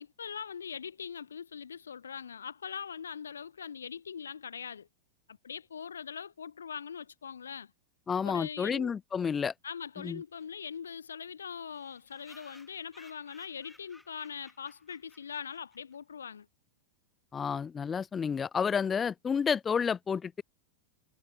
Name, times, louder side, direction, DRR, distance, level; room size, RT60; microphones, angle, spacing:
voice 1, 0.0-4.9 5.3-7.7 8.2-8.9 9.6-16.5, left 7 dB, 70° left, 0.4 m, -42 dB
voice 2, 8.1-9.5 10.0-10.2 17.3-20.4, left 6 dB, 20° left, 0.5 m, -30 dB
sound 1, 10.0-10.1 10.4-10.5 10.7-10.8 11.0-11.1 11.7-16.0, left 1 dB, 5° left, 1.5 m, -59 dB
figure-of-eight pair, 90°, 0 cm